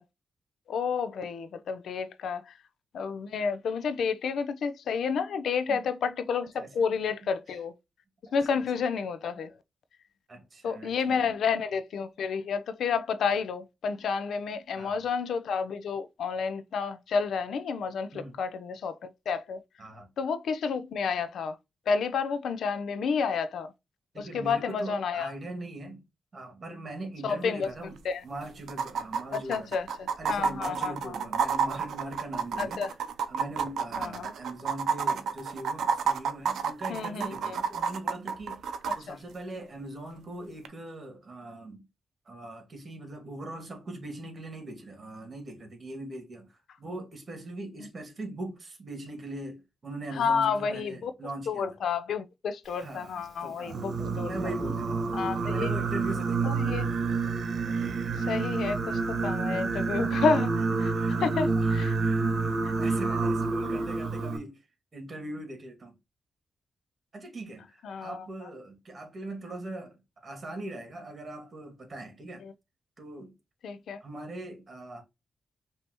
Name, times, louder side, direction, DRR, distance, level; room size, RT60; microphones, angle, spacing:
voice 1, 0.7-2.6 2.9-7.7 8.3-9.5 10.6-19.6 20.2-21.6 21.9-23.7 24.2-25.3 27.2-27.7 28.0-28.2 29.3-31.1 32.6-32.9 34.0-34.3 36.9-37.6 38.9-39.2 50.1-51.1 51.5-54.3 55.1-55.7 56.4-56.9 58.2-60.9 61.2-62.0 62.6-62.7 67.8-68.5 72.4-72.5 73.6-74.0, left 5 dB, 80° left, 0.5 m, -30 dB
voice 2, 10.3-11.3 14.8-15.0 18.1-18.4 19.8-20.1 24.1-26.0 26.3-28.0 28.2-29.7 30.2-32.8 33.3-38.6 38.9-41.9 42.3-51.8 52.8-55.1 55.3-56.6 60.7-61.2 61.5-61.7 62.0-64.6 64.9-66.0 67.1-72.5 73.0-73.3 74.0-75.0, right 1 dB, 45° right, 1.9 m, -41 dB
sound 1, 27.6-27.7 28.0-28.1 28.7-39.0 40.6-40.7, right 6 dB, 85° right, 0.5 m, -30 dB
Singing, 53.7-64.4, right 4 dB, 65° right, 1.1 m, -28 dB
5.4 x 2.8 x 2.9 m
cardioid pair, 75°, 0 cm